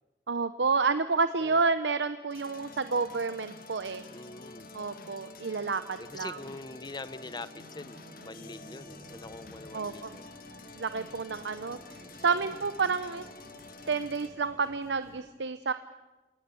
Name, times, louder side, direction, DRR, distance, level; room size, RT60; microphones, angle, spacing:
voice 1, 0.3-4.0 4.7-6.4 9.7-10.2 10.8-11.8 12.2-13.2 13.9-15.7, right 4 dB, 85° right, 11 dB, 0.8 m, -29 dB
sound 1, 2.3-14.3, left 3 dB, 55° left, 1.9 m, -49 dB
sound 2, 2.6-15.2, equal, 65° right, 6.0 m, -54 dB
voice 2, 4.1-4.7 6.0-10.3 11.8-12.5, left 3 dB, 25° left, 15 dB, 0.8 m, -44 dB
27.5 x 18.5 x 7.0 m, 1.2 s
head